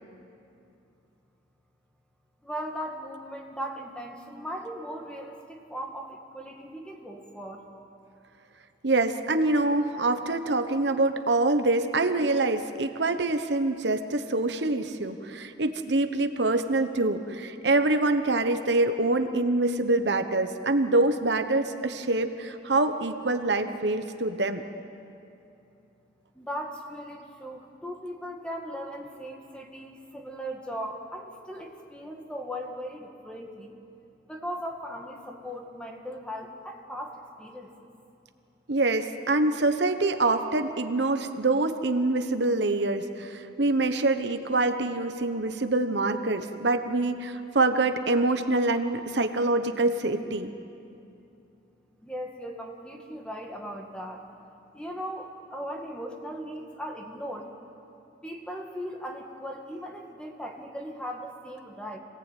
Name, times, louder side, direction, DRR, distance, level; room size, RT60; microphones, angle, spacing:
voice 1, 2.4-7.6 26.4-33.7 34.3-37.7 52.0-54.2 54.7-57.5 58.2-62.0, equal, 5° left, 1 dB, 2.0 m, -38 dB
voice 2, 8.8-24.6 38.7-50.5, right 2 dB, 65° right, 7 dB, 1.1 m, -25 dB
26.5 x 18.0 x 9.2 m, 2.7 s
head